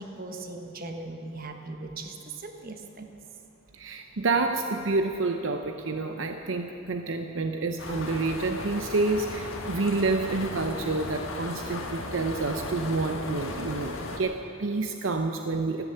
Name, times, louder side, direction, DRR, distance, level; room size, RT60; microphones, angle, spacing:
voice 1, 0.0-3.1, right 2 dB, 45° right, 5 dB, 1.3 m, -39 dB
voice 2, 3.7-15.9, right 3 dB, 70° right, 5 dB, 0.7 m, -28 dB
sound 1, 7.8-14.2, left 2 dB, 85° left, 1.5 m, -36 dB
13.0 x 12.5 x 7.9 m, 3.0 s
head